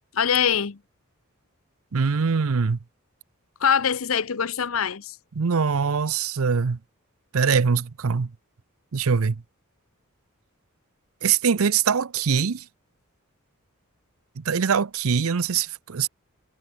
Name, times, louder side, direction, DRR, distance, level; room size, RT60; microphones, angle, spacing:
voice 1, 0.1-0.8 3.6-5.2, left 7 dB, 70° left, 0.8 m, -23 dB
voice 2, 1.9-2.8 5.4-6.8 7.3-8.3 8.9-9.4 11.2-12.6 14.4-16.1, right 6 dB, 75° right, 0.6 m, -23 dB
head